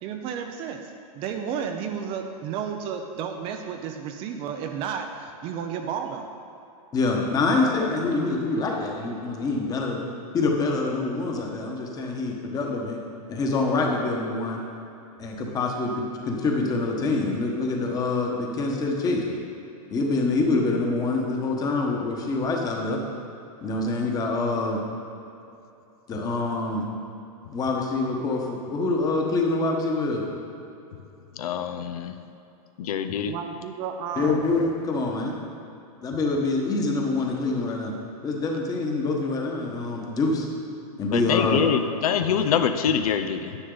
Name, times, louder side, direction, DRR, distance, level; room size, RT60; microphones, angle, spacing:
voice 1, 0.0-6.3 7.6-7.7 8.1-8.3 33.3-34.5, right 7 dB, 30° right, 5 dB, 0.5 m, -32 dB
voice 2, 6.9-10.0 10.3-13.0 13.3-14.6 15.2-19.2 19.9-23.0 23.6-24.8 26.1-26.9 27.5-30.3 34.2-35.4 36.0-37.9 38.2-40.5 41.0-41.6, left 3 dB, 20° left, 0 dB, 1.2 m, -25 dB
voice 3, 31.4-32.1 32.8-33.3 41.1-43.6, left 8 dB, 70° left, 8 dB, 0.6 m, -25 dB
10.0 x 9.3 x 3.9 m, 2.8 s
supercardioid pair, 150°, 20 cm